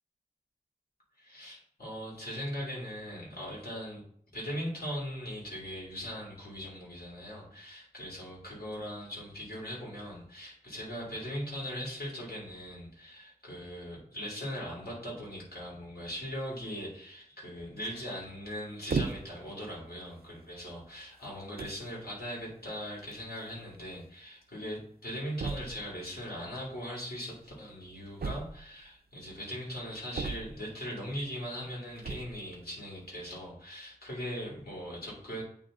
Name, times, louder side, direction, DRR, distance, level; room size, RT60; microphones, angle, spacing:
voice 1, 1.2-4.0 4.3-35.4, equal, 80° left, -5 dB, 2.6 m, -40 dB
sound 1, 18.9-19.5 20.3-20.4 21.2-21.3 21.6-21.9 23.1-23.2 23.4-23.5 23.7-23.8 25.4-25.9 28.2-28.9 30.1-30.8 32.0-32.4, right 4 dB, 80° right, 0.4 m, -35 dB
8.8 x 3.1 x 3.7 m, 0.65 s
wide cardioid pair, 60°, 16 cm